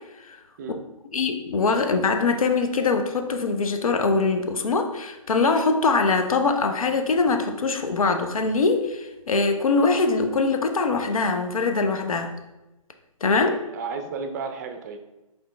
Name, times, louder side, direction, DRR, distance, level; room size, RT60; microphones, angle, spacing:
voice 1, 1.1-12.3 13.2-13.5, left 4 dB, 75° left, 6 dB, 0.7 m, -22 dB
voice 2, 13.4-15.0, right 5 dB, 30° right, 6 dB, 0.4 m, -33 dB
4.9 x 2.9 x 3.2 m, 1.0 s
figure-of-eight pair, 140°, 18 cm